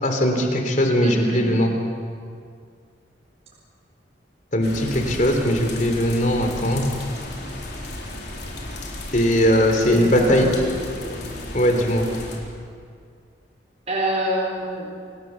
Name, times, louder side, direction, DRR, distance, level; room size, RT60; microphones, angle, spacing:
voice 1, 0.0-1.7 4.5-6.9 9.1-10.5 11.5-12.1, equal, 45° left, 4 dB, 3.3 m, -19 dB
voice 2, 1.0-1.5 9.9-11.1 13.9-14.9, right 1 dB, 35° right, -4 dB, 4.6 m, -27 dB
sound 1, 4.6-12.4, left 1 dB, 60° left, 4.2 m, -34 dB
27.0 x 18.5 x 7.3 m, 2.2 s
head